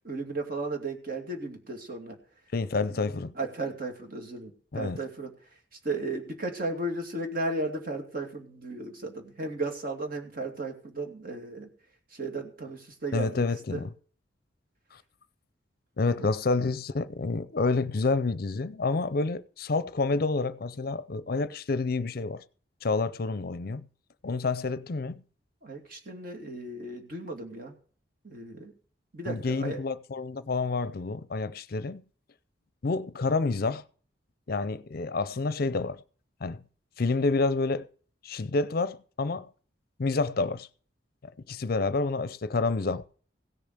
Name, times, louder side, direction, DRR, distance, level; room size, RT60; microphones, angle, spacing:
voice 1, 0.0-2.2 3.4-5.3 5.7-11.7 12.1-13.4 13.7-13.8 16.2-16.3 25.6-27.7 28.2-28.7 29.1-29.8, right 2 dB, 50° right, 2.6 m, -35 dB
voice 2, 2.5-3.3 4.7-5.0 13.1-13.9 14.9-15.0 16.0-22.4 22.8-23.8 24.2-25.2 29.3-32.0 32.8-33.8 34.5-36.0 36.4-36.6 37.0-37.9 38.2-39.5 40.0-40.7 41.5-43.0, left 3 dB, 55° left, 0.6 m, -28 dB
16.5 x 7.0 x 6.6 m
head